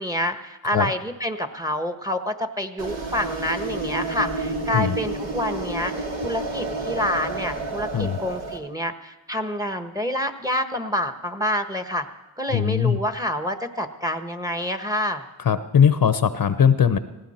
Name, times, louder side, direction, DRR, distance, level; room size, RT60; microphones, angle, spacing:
voice 1, 0.0-5.9 6.2-12.1 12.4-15.2, equal, 10° right, 7 dB, 1.3 m, -27 dB
sound 1, 2.8-8.6, right 2 dB, 70° right, 2.7 m, -30 dB
voice 2, 12.5-13.0 15.4-17.0, left 8 dB, 45° left, 11 dB, 0.8 m, -19 dB
18.5 x 17.0 x 4.4 m, 1.1 s
cardioid pair, 80°, 47 cm